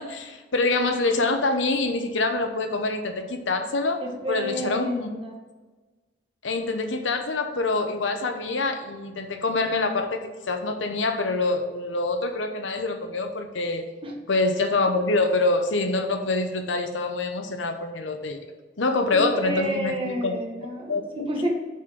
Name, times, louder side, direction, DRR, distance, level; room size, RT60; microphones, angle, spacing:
voice 1, 0.0-4.0 4.3-5.1 6.4-13.8 14.3-18.4 18.8-20.3 20.9-21.3, left 3 dB, 85° left, 6 dB, 0.9 m, -25 dB
voice 2, 4.0-5.3 14.0-14.1 19.1-21.5, equal, 30° right, 0 dB, 1.4 m, -30 dB
7.3 x 4.3 x 5.1 m, 1.3 s
head